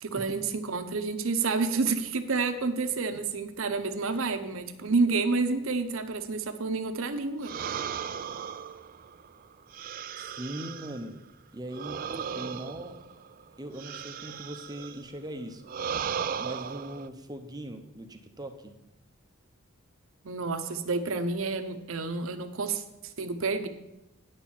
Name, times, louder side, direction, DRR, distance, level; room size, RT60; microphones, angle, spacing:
voice 1, 0.0-7.5 20.2-22.8 23.2-23.7, right 4 dB, 75° right, 8 dB, 0.8 m, -29 dB
sound 1, 7.4-11.1 11.7-15.0 15.6-17.1, right 7 dB, 40° right, 0.3 m, -36 dB
voice 2, 10.2-11.2 11.5-13.0 13.6-15.6 16.4-18.8, right 1 dB, 20° right, 6 dB, 0.7 m, -40 dB
9.4 x 4.5 x 7.3 m, 0.91 s
head